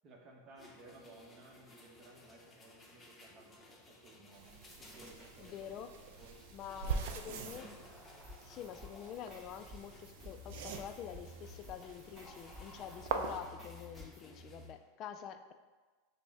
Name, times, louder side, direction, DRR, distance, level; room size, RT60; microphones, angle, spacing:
voice 1, 0.0-6.3 6.7-8.0, right 2 dB, 40° right, -1 dB, 0.9 m, -57 dB
sound 1, 0.6-14.7, left 3 dB, 15° left, 0.7 m, -56 dB
sound 2, 4.3-13.4, right 5 dB, 70° right, 0.4 m, -44 dB
sound 3, 4.6-5.3 8.2-14.2, left 1 dB, 20° right, 1.4 m, -55 dB
voice 2, 5.4-5.9 6.5-7.7 8.4-15.5, left 9 dB, 40° left, 9 dB, 0.3 m, -47 dB
5.9 x 2.1 x 3.5 m, 1.3 s
hypercardioid pair, 115°, 0 cm